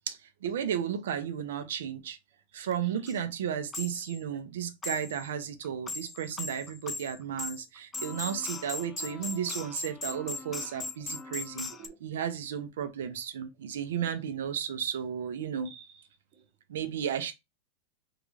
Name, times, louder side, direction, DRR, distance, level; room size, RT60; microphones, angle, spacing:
voice 1, 0.1-2.2 2.5-11.7 12.0-15.7 16.7-17.3, right 8 dB, 85° right, 0.6 m, -34 dB
voice 2, 2.5-3.0 4.3-4.4 10.6-10.7 11.0-11.1 11.7-12.2 15.6-16.4, right 7 dB, 45° right, 1.0 m, -54 dB
sound 1, 2.7-2.8 3.1-3.2 3.7-4.2 4.8-5.3 5.6-11.9, left 4 dB, 15° left, 0.3 m, -39 dB
3.7 x 2.4 x 3.1 m
supercardioid pair, 150°, 0 cm